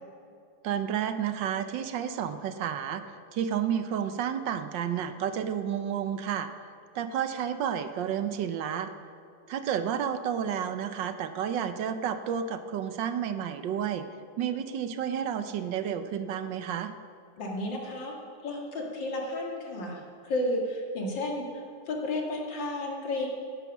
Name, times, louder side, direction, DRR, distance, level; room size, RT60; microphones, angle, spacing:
voice 1, 0.6-6.5 6.9-8.9 9.5-14.1 14.4-16.9, right 8 dB, 75° right, 10 dB, 1.5 m, -31 dB
voice 2, 17.4-18.1 18.4-23.3, left 1 dB, 75° left, 0 dB, 2.7 m, -32 dB
15.5 x 10.5 x 6.1 m, 2.6 s
omnidirectional pair, 2.0 m